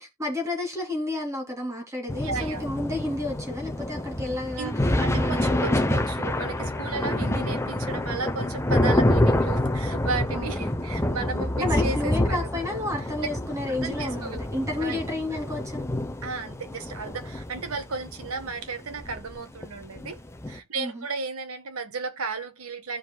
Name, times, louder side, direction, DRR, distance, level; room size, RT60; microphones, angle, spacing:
voice 1, 0.2-4.7 5.1-5.7 10.3-10.7 11.6-15.8 20.8-21.0, left 2 dB, 15° right, 2.8 m, -31 dB
sound 1, 2.1-20.6, left 1 dB, 10° left, 0.7 m, -27 dB
voice 2, 2.2-2.6 4.6-12.4 13.7-14.5 14.8-15.0 16.2-20.2 20.5-23.0, right 4 dB, 80° right, 1.5 m, -34 dB
15.5 x 5.2 x 2.3 m
head